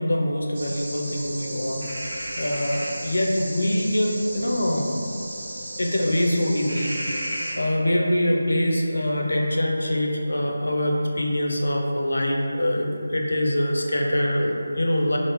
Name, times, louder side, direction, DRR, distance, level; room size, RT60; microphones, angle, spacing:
voice 1, 0.0-1.9 2.4-4.9 5.8-7.2 7.6-15.2, left 1 dB, 80° left, 0 dB, 0.5 m, -24 dB
sound 1, 0.5-7.5, right 1 dB, 55° right, 0.9 m, -34 dB
3.6 x 2.0 x 3.3 m, 2.6 s
figure-of-eight pair, 165°, 0 cm